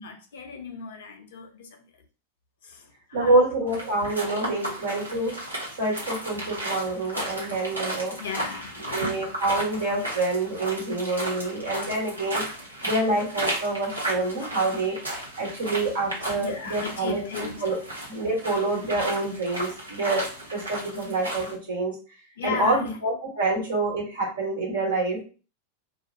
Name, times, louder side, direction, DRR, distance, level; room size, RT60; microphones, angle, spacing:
voice 1, 0.0-1.9 2.6-3.7 8.2-9.3 15.6-15.7 16.4-17.6 21.0-21.1 22.4-23.0, left 5 dB, 55° left, 0.5 m, -36 dB
voice 2, 3.1-5.3 5.8-8.2 8.9-12.4 12.8-17.2 17.6-17.8 18.1-21.9 22.4-25.2, right 2 dB, 65° right, 1.4 m, -27 dB
sound 1, 3.7-21.5, right 1 dB, 85° right, 0.8 m, -34 dB
2.4 x 2.1 x 2.6 m
figure-of-eight pair, 90°, 0 cm